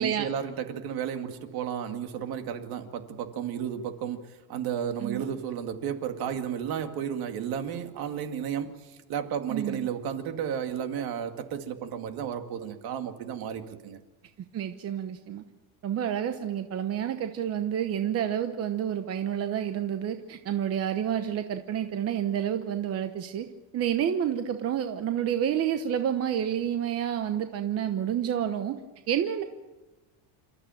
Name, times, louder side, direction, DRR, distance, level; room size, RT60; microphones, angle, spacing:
voice 1, 0.0-14.0, right 8 dB, 55° right, 6 dB, 2.3 m, -33 dB
voice 2, 9.5-9.9 14.5-15.4 15.8-23.5 23.7-28.8 29.1-29.4, right 9 dB, 35° right, 7 dB, 1.0 m, -29 dB
28.5 x 13.5 x 9.1 m, 1.1 s
cardioid pair, 170°, 42 cm